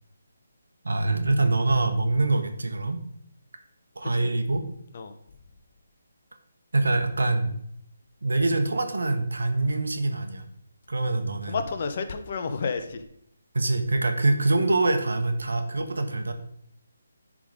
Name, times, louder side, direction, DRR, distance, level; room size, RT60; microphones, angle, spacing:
voice 1, 0.8-3.0 3.9-4.6 6.7-7.6 8.2-10.4 10.9-11.6 13.5-16.3, right 2 dB, 75° right, 6 dB, 1.1 m, -24 dB
voice 2, 11.5-13.1, left 5 dB, 45° left, 7 dB, 0.9 m, -31 dB
10.5 x 3.8 x 4.9 m, 0.69 s
figure-of-eight pair, 150°, 0 cm